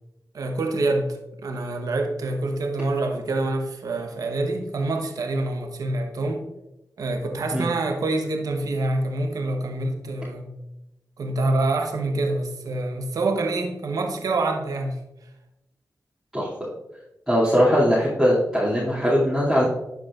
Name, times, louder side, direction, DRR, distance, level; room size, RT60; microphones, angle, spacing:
voice 1, 0.3-6.5 7.0-10.5 11.2-15.0, right 2 dB, 75° right, 1.0 m, -26 dB
voice 2, 16.3-16.7 17.3-19.6, equal, ahead, 2.5 m, -20 dB
11.5 x 4.9 x 2.4 m
cardioid pair, 50°, 6 cm